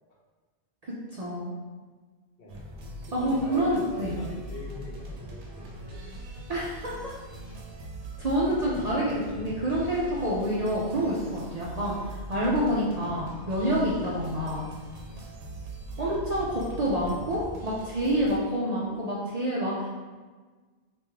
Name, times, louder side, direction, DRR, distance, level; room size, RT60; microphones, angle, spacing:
voice 1, 0.8-1.5 3.1-4.1 6.5-7.1 8.2-14.7 16.0-19.9, equal, 50° right, -6 dB, 0.5 m, -28 dB
sound 1, 2.5-18.4, right 1 dB, 85° right, 0.9 m, -41 dB
voice 2, 3.1-6.1 7.4-7.6 15.9-16.1 17.0-17.3, left 2 dB, 60° left, -3 dB, 0.9 m, -43 dB
3.5 x 2.5 x 3.1 m, 1.4 s
omnidirectional pair, 1.1 m